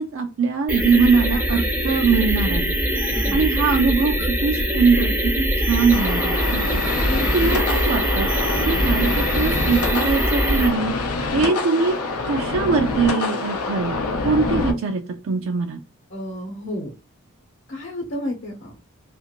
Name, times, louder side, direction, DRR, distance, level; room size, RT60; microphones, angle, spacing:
voice 1, 0.0-2.8 3.3-6.8 7.3-10.9 11.3-12.0 12.3-15.8, right 5 dB, 65° right, 4 dB, 0.4 m, -22 dB
sound 1, 0.7-10.7, equal, 10° right, 0.5 m, -22 dB
voice 2, 3.1-3.4 7.0-7.3 16.1-16.9 17.7-18.7, left 1 dB, 55° left, -1 dB, 0.8 m, -31 dB
sound 2, 5.9-14.7, left 3 dB, 90° left, 0.6 m, -26 dB
2.5 x 2.5 x 2.9 m, 0.29 s
head